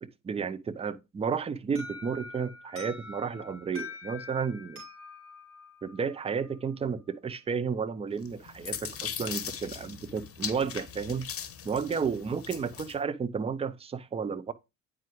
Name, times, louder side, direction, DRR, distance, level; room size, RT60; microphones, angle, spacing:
voice 1, 0.2-4.8 5.8-11.3 11.6-14.5, right 6 dB, 15° right, 0.5 m, -32 dB
Alarm, 1.8-6.5, left 3 dB, 85° right, 3.1 m, -45 dB
sound 1, 8.2-13.0, left 8 dB, 30° left, 0.9 m, -39 dB
8.9 x 4.9 x 3.1 m
hypercardioid pair, 60°, 43 cm